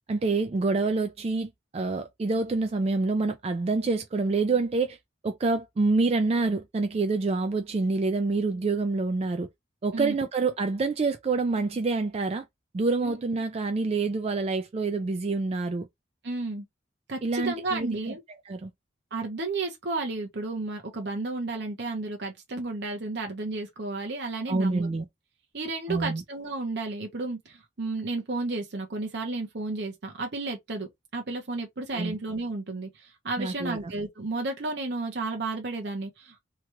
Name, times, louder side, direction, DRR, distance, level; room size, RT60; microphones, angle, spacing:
voice 1, 0.1-5.0 5.2-9.5 9.8-12.5 12.7-15.9 17.2-18.2 18.5-18.7 24.5-25.1 25.9-26.2 31.9-32.2 33.4-33.9, right 3 dB, 35° right, 0.3 m, -27 dB
voice 2, 16.2-16.6 17.1-18.2 19.1-24.9 25.5-32.9 33.2-36.4, right 3 dB, 60° right, 0.8 m, -32 dB
2.9 x 2.3 x 2.9 m
head